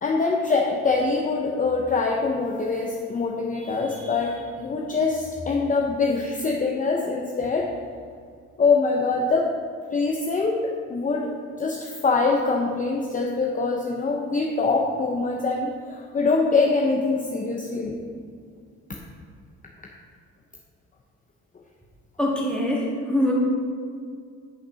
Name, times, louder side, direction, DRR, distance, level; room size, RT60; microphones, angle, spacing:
voice 1, 0.0-7.7 8.6-9.5 9.9-11.3 11.6-18.0 18.9-19.0, left 4 dB, 25° left, 0 dB, 0.7 m, -24 dB
voice 2, 22.2-23.3, left 1 dB, 5° left, -3 dB, 1.8 m, -23 dB
6.5 x 5.6 x 5.6 m, 2.2 s
cardioid pair, 100°, 29 cm